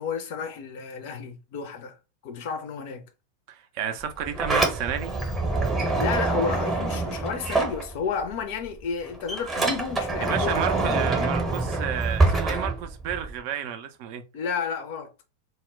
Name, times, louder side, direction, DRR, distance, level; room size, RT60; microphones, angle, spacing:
voice 1, 0.0-1.9 2.2-3.0 5.9-11.0 14.3-15.1, left 6 dB, 50° left, 0.5 m, -32 dB
voice 2, 3.5-5.2 10.2-14.2, right 9 dB, 45° right, 0.4 m, -31 dB
Sliding door, 4.0-8.3 8.7-13.4, right 3 dB, 15° right, 0.7 m, -26 dB
2.1 x 2.0 x 3.4 m
figure-of-eight pair, 90°, 0 cm